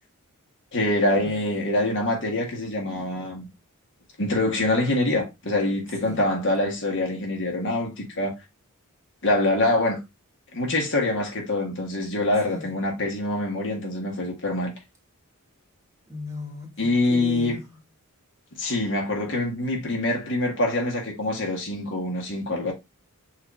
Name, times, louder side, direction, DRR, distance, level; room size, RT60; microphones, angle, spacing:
voice 1, 0.7-3.5 4.2-8.3 9.2-10.0 10.5-14.7 16.8-17.6 18.6-22.7, left 2 dB, 55° left, 1.5 m, -25 dB
voice 2, 16.1-17.6, left 3 dB, 15° right, 1.2 m, -37 dB
6.2 x 2.6 x 3.0 m
head